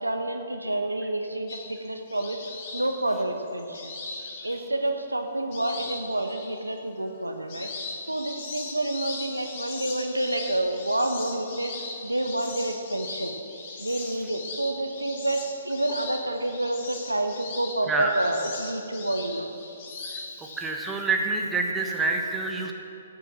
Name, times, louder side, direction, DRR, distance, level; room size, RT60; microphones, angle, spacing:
voice 1, 0.0-2.4 2.7-3.9 4.4-7.7 8.1-11.7 12.0-13.3 13.8-19.5, right 1 dB, 90° right, 5 dB, 1.0 m, -28 dB
sound 1, 1.5-4.9 5.5-6.6 7.0-20.6, left 3 dB, 40° left, 2.2 m, -39 dB
voice 2, 20.6-22.7, right 3 dB, 10° right, 1 dB, 1.3 m, -27 dB
13.5 x 6.9 x 7.2 m, 2.7 s
figure-of-eight pair, 125°, 0 cm